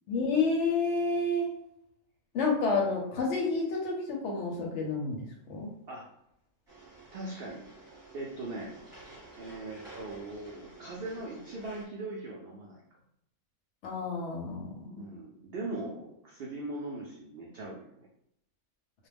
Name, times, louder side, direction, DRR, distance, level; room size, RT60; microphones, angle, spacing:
voice 1, 0.1-1.5 2.3-5.7 13.8-15.1, left 3 dB, 65° left, 0 dB, 0.8 m, -30 dB
sound 1, 6.7-11.9, right 2 dB, 20° right, 0.9 m, -51 dB
voice 2, 7.1-7.6 8.1-8.7 9.4-12.8 14.9-18.1, right 2 dB, 75° right, -3 dB, 0.5 m, -40 dB
2.3 x 2.1 x 3.3 m, 0.78 s
omnidirectional pair, 1.5 m